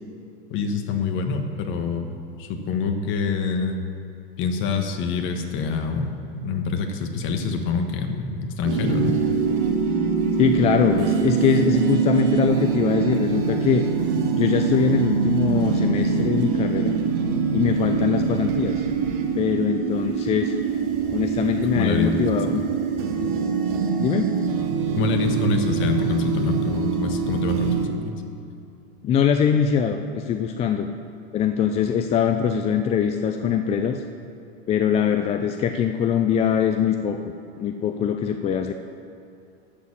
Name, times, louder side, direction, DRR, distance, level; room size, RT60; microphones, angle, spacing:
voice 1, 0.5-3.8 4.4-9.2 21.7-22.2 23.2-23.3 24.9-27.7 28.0-28.1, left 4 dB, 40° left, 5 dB, 1.3 m, -26 dB
sound 1, 8.6-27.9, right 5 dB, 55° right, 1.8 m, -24 dB
voice 2, 10.4-13.8 14.4-17.0 17.5-18.9 19.3-20.5 21.1-22.6 24.0-24.3 29.0-30.9 31.3-34.0 34.7-37.2 37.6-38.7, left 7 dB, 20° left, 6 dB, 0.4 m, -22 dB
12.0 x 6.7 x 7.2 m, 2.5 s
hypercardioid pair, 120°, 32 cm